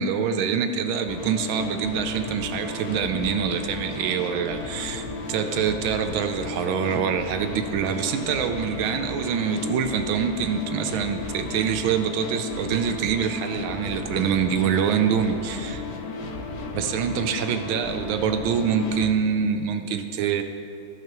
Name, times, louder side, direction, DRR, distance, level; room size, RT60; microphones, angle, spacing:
voice 1, 0.0-15.8 16.7-20.4, right 7 dB, 75° right, 7 dB, 1.3 m, -25 dB
sound 1, 1.1-19.1, left 3 dB, 70° left, 0.7 m, -34 dB
14.5 x 5.7 x 3.0 m, 2.6 s
omnidirectional pair, 2.3 m